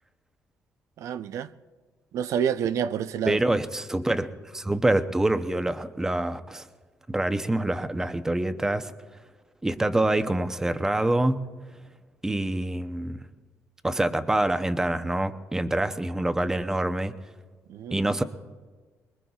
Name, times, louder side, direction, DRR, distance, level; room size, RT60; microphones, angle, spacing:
voice 1, 1.0-1.5 2.1-3.4 17.7-18.0, right 8 dB, 70° right, 0.5 m, -28 dB
voice 2, 3.3-6.7 7.1-8.9 9.6-11.5 12.2-13.3 13.8-17.1 17.9-18.2, right 1 dB, 10° right, 0.7 m, -26 dB
24.5 x 22.0 x 2.4 m
cardioid pair, 140°, 6 cm